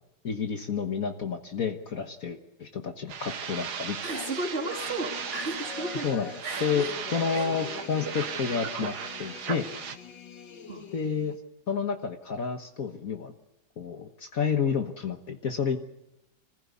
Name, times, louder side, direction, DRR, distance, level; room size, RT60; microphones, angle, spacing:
voice 1, 0.2-4.0 6.0-6.3 6.6-6.9 7.1-9.7 10.9-11.4 11.7-13.3 13.8-15.8, left 6 dB, 55° left, 5 dB, 1.6 m, -30 dB
sound 1, 3.1-10.0, right 7 dB, 65° right, 1.7 m, -36 dB
sound 2, 3.5-11.4, left 7 dB, 80° left, 2.0 m, -44 dB
voice 2, 4.0-6.1 6.4-7.0 7.3-7.5 10.7-10.9, right 2 dB, 35° right, -1 dB, 3.4 m, -34 dB
25.0 x 15.5 x 8.4 m, 0.89 s
omnidirectional pair, 1.9 m